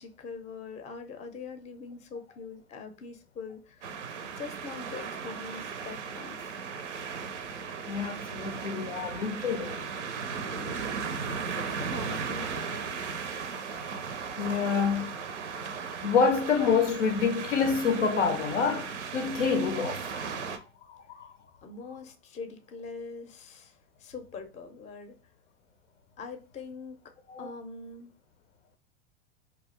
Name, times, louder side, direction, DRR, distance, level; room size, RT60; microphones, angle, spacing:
voice 1, 0.0-3.9 4.4-6.6 9.7-9.9 10.4-11.0 11.5-13.4 21.6-25.2 26.2-27.0 27.4-28.1, left 4 dB, 20° left, 0.5 m, -43 dB
sound 1, 3.8-20.6, right 6 dB, 85° right, 0.5 m, -36 dB
voice 2, 7.9-9.8 14.4-15.2 16.0-20.1 20.4-20.6 20.9-21.3 27.3-27.5, left 5 dB, 85° left, 0.5 m, -27 dB
2.4 x 2.3 x 3.0 m
figure-of-eight pair, 85°, 35 cm